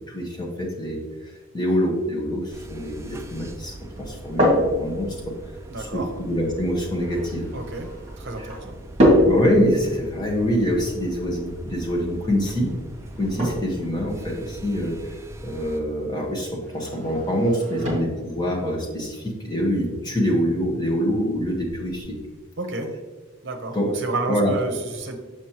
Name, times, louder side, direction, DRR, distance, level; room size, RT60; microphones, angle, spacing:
voice 1, 0.1-1.0 1.5-5.4 5.8-7.5 8.4-8.5 9.2-12.7 13.2-22.2 23.7-23.9 24.3-24.5, equal, 20° left, -2 dB, 1.3 m, -25 dB
sound 1, 2.5-15.8, right 1 dB, 15° right, 0.3 m, -41 dB
sound 2, 4.0-22.0, equal, 35° right, 1.7 m, -28 dB
voice 2, 5.7-6.1 7.5-7.9 8.2-8.8 22.6-22.9 23.4-25.2, right 2 dB, 55° right, 4 dB, 0.9 m, -30 dB
6.3 x 6.2 x 2.9 m, 1.2 s
head